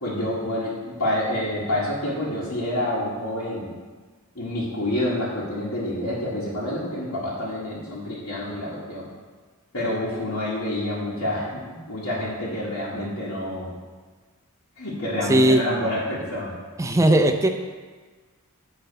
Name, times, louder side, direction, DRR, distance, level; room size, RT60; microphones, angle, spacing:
voice 1, 0.0-3.7 4.4-9.0 9.7-13.7 14.8-16.6, left 1 dB, 90° left, -9 dB, 1.8 m, -28 dB
voice 2, 15.3-15.6 16.8-17.5, right 1 dB, 15° right, 5 dB, 0.4 m, -17 dB
8.7 x 4.1 x 5.3 m, 1.4 s
head